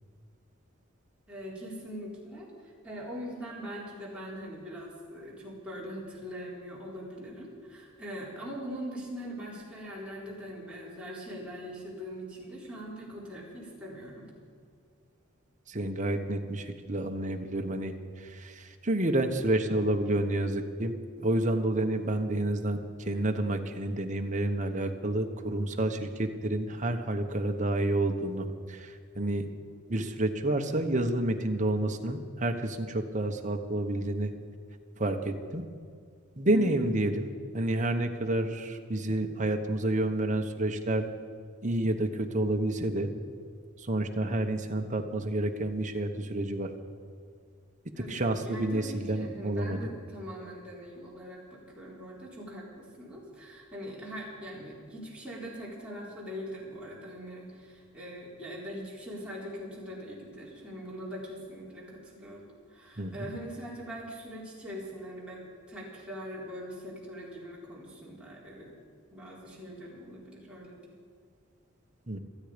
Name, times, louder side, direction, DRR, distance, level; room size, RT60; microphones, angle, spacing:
voice 1, 1.3-14.3 36.5-36.9 48.0-65.4 65.7-68.8 69.1-71.0, equal, 5° right, -6 dB, 4.1 m, -42 dB
voice 2, 15.7-20.9 21.2-22.8 23.1-29.5 29.9-34.3 35.0-35.6 36.4-41.1 41.6-43.1 43.9-46.7 48.0-49.8 63.0-63.3 72.1-72.2, right 1 dB, 35° right, 5 dB, 1.2 m, -29 dB
27.0 x 9.5 x 5.2 m, 2.2 s
head